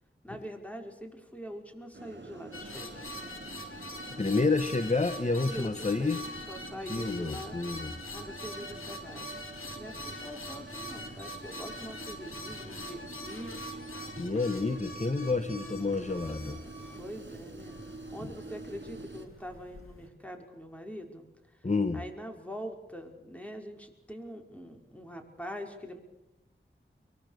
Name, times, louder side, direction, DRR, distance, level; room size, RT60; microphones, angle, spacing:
voice 1, 0.2-3.3 5.5-6.1 6.5-7.6 8.1-13.6 17.0-21.3 21.5-26.0, equal, 5° left, 3 dB, 5.5 m, -44 dB
sound 1, 1.9-19.3, right 2 dB, 60° right, 4.1 m, -46 dB
sound 2, 2.5-20.1, left 1 dB, 85° left, 3.4 m, -44 dB
voice 2, 4.1-6.2 6.9-7.9 14.2-16.6 21.6-22.0, left 3 dB, 35° left, 10 dB, 1.3 m, -29 dB
24.0 x 23.0 x 6.8 m, 0.95 s
wide cardioid pair, 45°, 21 cm